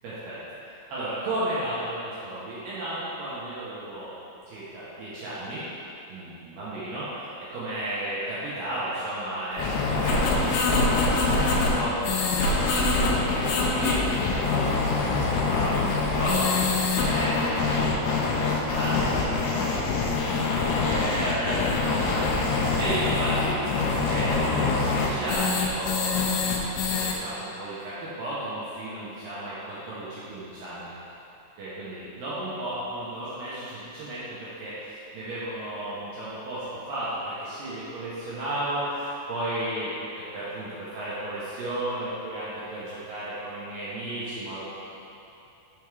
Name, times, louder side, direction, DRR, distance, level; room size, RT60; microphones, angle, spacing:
voice 1, 0.0-0.4 0.9-4.1 4.5-5.6 6.1-14.7 15.2-18.0 18.3-19.8 20.8-23.8 24.1-26.2 26.6-30.9 31.6-44.7, right 1 dB, 75° right, -10 dB, 2.1 m, -33 dB
sound 1, 9.6-27.1, left 3 dB, 90° left, 2.2 m, -24 dB
6.9 x 3.5 x 4.6 m, 2.8 s
omnidirectional pair, 5.2 m